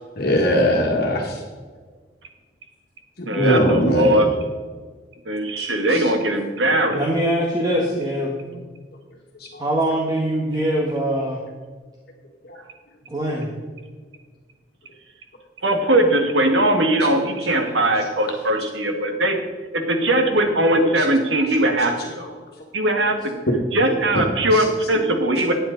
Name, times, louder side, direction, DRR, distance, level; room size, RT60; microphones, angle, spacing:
voice 1, 0.2-1.4 3.3-4.3 5.6-6.1 9.4-9.6 21.0-21.1 24.1-24.2 24.5-24.6, equal, 55° left, 0 dB, 1.7 m, -21 dB
voice 2, 3.3-4.3 5.3-7.0 8.5-8.6 15.6-19.4 19.7-22.3 22.7-23.3 23.7-25.5, right 1 dB, 75° right, 4 dB, 1.7 m, -20 dB
voice 3, 6.9-8.4 9.6-11.4 13.1-13.5, right 1 dB, 20° right, -2 dB, 1.5 m, -23 dB
13.0 x 9.3 x 4.0 m, 1.5 s
head